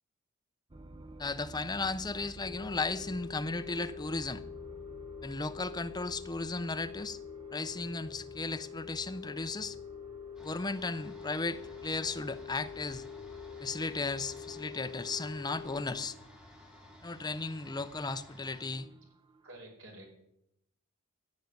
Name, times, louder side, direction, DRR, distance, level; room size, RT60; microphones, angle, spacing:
sound 1, 0.7-19.6, right 2 dB, 25° right, 0.8 m, -53 dB
voice 1, 1.2-4.4 5.2-7.2 7.5-9.8 10.4-13.0 13.6-16.2 17.0-18.8, left 3 dB, 20° left, 12 dB, 0.6 m, -35 dB
sound 2, 2.4-16.0, left 7 dB, 40° left, 4.5 m, -46 dB
sound 3, 10.4-18.7, left 1 dB, 5° right, 2.8 m, -55 dB
voice 2, 18.8-19.1 19.4-20.1, right 1 dB, 60° right, 1 dB, 5.2 m, -51 dB
15.0 x 6.6 x 9.6 m, 0.81 s
head